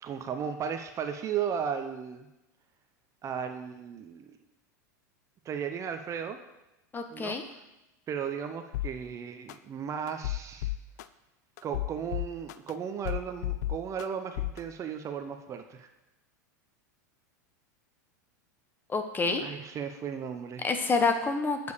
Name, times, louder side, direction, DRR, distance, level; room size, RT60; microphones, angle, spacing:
voice 1, 0.0-2.3 3.2-4.4 5.4-6.4 7.1-7.4 8.1-10.7 11.6-15.9 19.4-20.7, right 7 dB, 30° right, 7 dB, 0.7 m, -35 dB
voice 2, 6.9-7.4 18.9-19.4 20.6-21.7, left 4 dB, 20° left, 6 dB, 1.0 m, -27 dB
sound 1, 8.7-8.9 9.5-9.6 10.1-11.0 11.6-12.7 13.0-14.0 14.4-14.6, left 15 dB, 65° left, 0.4 m, -32 dB
7.1 x 4.7 x 6.8 m, 0.97 s
hypercardioid pair, 95°, 10 cm